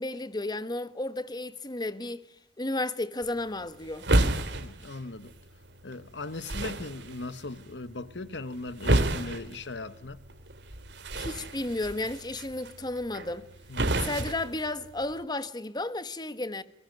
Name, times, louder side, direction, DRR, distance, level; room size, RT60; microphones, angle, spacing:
voice 1, 0.0-2.2 2.6-4.1 11.1-13.5 14.0-16.6, left 2 dB, 25° left, 1.3 m, -33 dB
sound 1, 3.2-15.2, right 1 dB, 85° right, 3.0 m, -32 dB
voice 2, 4.5-5.3 5.8-10.2 13.7-14.1, left 2 dB, 90° left, 1.3 m, -39 dB
29.0 x 21.5 x 9.4 m
head